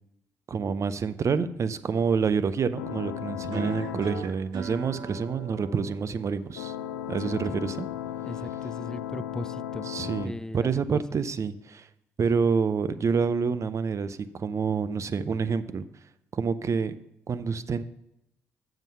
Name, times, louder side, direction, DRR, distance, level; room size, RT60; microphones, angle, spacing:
voice 1, 0.5-6.7 7.1-7.9 9.8-11.9 12.2-15.9 16.3-16.9 17.3-17.8, right 5 dB, 45° right, 13 dB, 0.5 m, -27 dB
sound 1, 2.8-4.2 6.6-10.3, left 11 dB, 80° left, 0.4 m, -35 dB
sound 2, 3.5-8.5, right 5 dB, 65° right, 0.9 m, -40 dB
voice 2, 8.2-9.9 10.2-11.0, left 2 dB, 10° left, 17 dB, 0.4 m, -38 dB
7.1 x 5.8 x 5.5 m, 0.84 s
hypercardioid pair, 40°, 7 cm